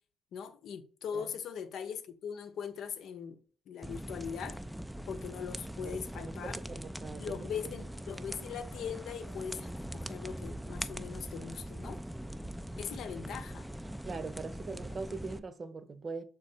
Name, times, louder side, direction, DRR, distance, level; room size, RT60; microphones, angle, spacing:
voice 1, 0.3-3.4 3.7-4.6 5.1-6.6 7.2-12.0 12.8-13.7, left 7 dB, 75° left, 0.7 m, -40 dB
sound 1, 3.8-15.4, right 1 dB, 5° right, 0.4 m, -42 dB
voice 2, 5.9-7.7 14.0-16.2, right 4 dB, 40° right, 0.8 m, -42 dB
6.3 x 3.8 x 4.3 m
cardioid pair, 90°, 0 cm